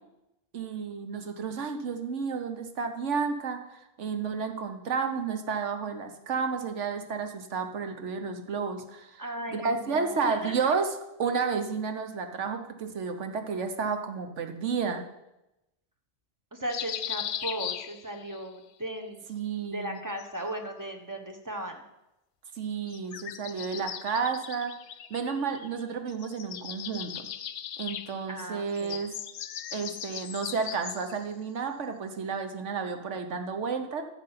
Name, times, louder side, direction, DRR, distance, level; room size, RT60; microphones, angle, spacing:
voice 1, 0.5-9.2 9.5-10.9 11.2-15.0 19.3-20.0 22.6-24.7 25.1-27.3 27.8-29.2 29.7-34.0, right 5 dB, 85° right, 6 dB, 1.4 m, -31 dB
voice 2, 9.2-10.7 16.5-19.2 19.7-21.8 28.3-29.0, right 1 dB, 15° right, 4 dB, 1.2 m, -37 dB
sound 1, 16.7-18.4 19.8-20.9 22.8-25.8 26.1-31.3, left 10 dB, 75° left, 0.9 m, -39 dB
11.5 x 7.2 x 5.8 m, 0.92 s
omnidirectional pair, 1.2 m